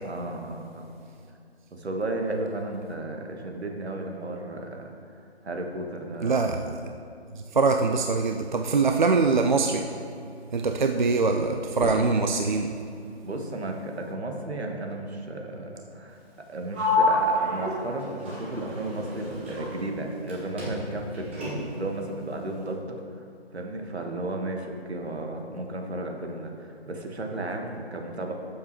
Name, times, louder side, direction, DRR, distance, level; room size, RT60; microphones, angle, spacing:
voice 1, 0.0-0.9 1.7-6.5 13.2-16.2 16.5-21.3 21.7-23.0 23.5-28.3, right 2 dB, 75° right, 2 dB, 1.5 m, -34 dB
voice 2, 6.2-6.7 7.5-9.9 10.5-12.7, right 4 dB, 45° right, 5 dB, 0.4 m, -23 dB
Fireworks, 11.8-14.1, left 1 dB, 10° left, 1.7 m, -39 dB
Sliding door, 16.7-20.3 20.6-21.9, left 2 dB, 10° right, 0.8 m, -28 dB
12.5 x 7.2 x 3.1 m, 2.5 s
figure-of-eight pair, 160°, 33 cm